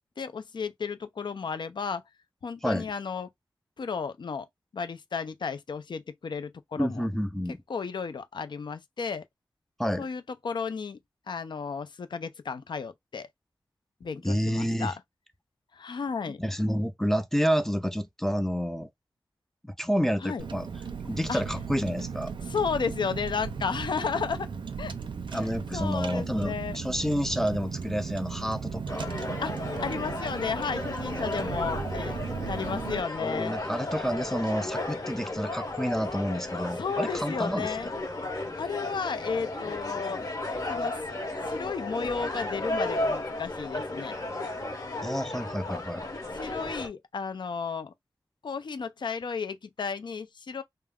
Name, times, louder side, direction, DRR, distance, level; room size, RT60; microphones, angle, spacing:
voice 1, 0.2-2.0 2.4-3.3 3.8-4.5 4.7-7.0 7.7-9.2 10.0-11.0 11.3-13.3 14.0-14.9 15.7-16.4 20.2-20.4 21.3-21.4 22.5-24.5 24.8-24.9 25.3-25.4 25.7-26.8 29.4-32.2 32.5-33.6 36.8-37.9 38.6-40.3 40.7-41.0 41.5-44.1 46.3-47.9 48.4-50.6, left 5 dB, 65° left, 0.4 m, -33 dB
voice 2, 6.8-7.6 9.8-10.1 14.2-14.9 16.4-18.9 19.6-20.7 21.0-22.3 25.3-29.2 33.2-37.8 45.0-46.1, equal, 5° left, 0.4 m, -29 dB
Car, 20.4-33.0, right 5 dB, 70° right, 0.4 m, -36 dB
sound 1, 28.9-46.9, left 2 dB, 45° left, 0.9 m, -34 dB
2.3 x 2.0 x 3.4 m
wide cardioid pair, 70°, 9 cm